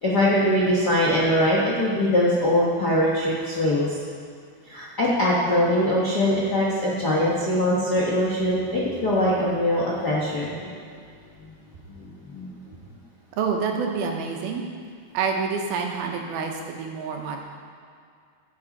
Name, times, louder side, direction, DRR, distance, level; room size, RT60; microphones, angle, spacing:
voice 1, 0.0-4.0 4.7-10.8 11.4-11.5 12.0-12.5, left 1 dB, 75° left, -6 dB, 0.9 m, -22 dB
voice 2, 13.3-14.6 15.1-17.4, right 5 dB, 85° right, 2 dB, 3.0 m, -27 dB
16.0 x 8.0 x 4.2 m, 2.2 s
omnidirectional pair, 4.3 m